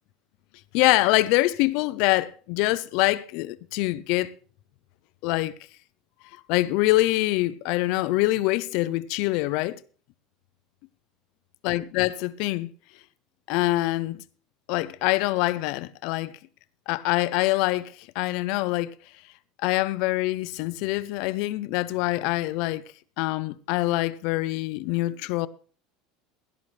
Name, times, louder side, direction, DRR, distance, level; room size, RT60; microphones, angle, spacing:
voice 1, 0.7-4.4 5.2-5.5 6.5-9.8 11.6-12.7 13.5-14.2 14.7-16.3 16.9-18.9 19.6-22.8 23.2-25.5, left 19 dB, 60° left, 0.6 m, -25 dB
16.5 x 12.0 x 3.3 m
cardioid pair, 155°, 0 cm